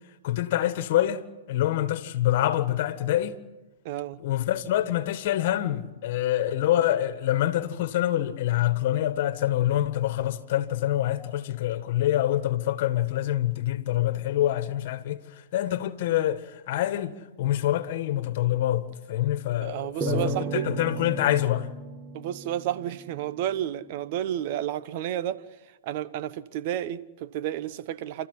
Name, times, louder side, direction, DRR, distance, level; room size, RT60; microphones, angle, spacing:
voice 1, 0.2-3.4 4.2-21.7, left 13 dB, 55° left, 1.6 m, -26 dB
voice 2, 3.8-4.2 19.6-20.7 22.1-28.3, right 11 dB, 50° right, 1.0 m, -31 dB
sound 1, 20.0-23.4, right 5 dB, 20° right, 1.6 m, -34 dB
28.5 x 13.5 x 9.8 m
hypercardioid pair, 120°, 0 cm